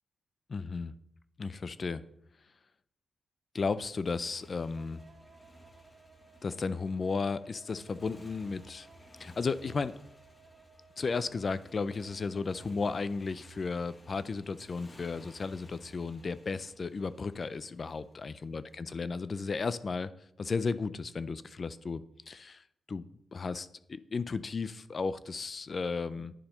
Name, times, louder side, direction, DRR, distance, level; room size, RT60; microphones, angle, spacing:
voice 1, 0.5-0.9 1.4-2.0 3.5-5.0 6.4-8.9 9.2-9.9 11.0-20.1 20.4-22.6 22.9-26.3, left 4 dB, 45° left, 15 dB, 0.4 m, -34 dB
Motorcycle, 3.6-18.7, equal, 30° left, 1.4 m, -57 dB
Wind instrument woodwind instrument, 4.7-12.9, right 4 dB, 45° right, 1.4 m, -60 dB
9.9 x 4.3 x 5.3 m, 0.74 s
cardioid pair, 70°, 0 cm